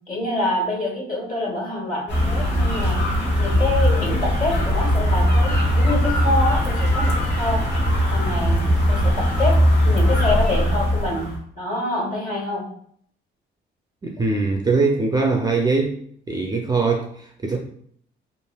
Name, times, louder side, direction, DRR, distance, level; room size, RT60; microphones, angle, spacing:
voice 1, 0.1-3.0 3.4-7.6 8.1-9.6 9.8-11.3 11.5-12.6, left 1 dB, 45° left, -2 dB, 1.2 m, -26 dB
sound 1, 2.1-11.4, equal, 60° left, 1.4 m, -20 dB
voice 2, 14.0-16.0 16.3-17.6, right 3 dB, 20° right, 2 dB, 0.4 m, -21 dB
3.1 x 2.5 x 2.2 m, 0.62 s
cardioid pair, 90°, 20 cm